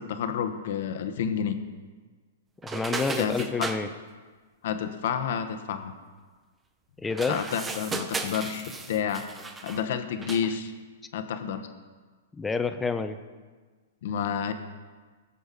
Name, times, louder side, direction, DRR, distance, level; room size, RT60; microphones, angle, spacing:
voice 1, 0.0-1.6 3.2-3.7 4.6-5.9 7.3-9.2 9.6-10.7 11.1-11.6 14.0-14.5, left 8 dB, 65° left, 8 dB, 1.0 m, -30 dB
voice 2, 2.6-3.9 7.0-7.4 12.3-13.2, left 4 dB, 10° left, 9 dB, 0.6 m, -28 dB
sound 1, 2.6-3.8 7.1-9.9 10.2-10.6, right 3 dB, 15° right, 0.9 m, -35 dB
18.5 x 7.0 x 4.1 m, 1.4 s
hypercardioid pair, 135°, 0 cm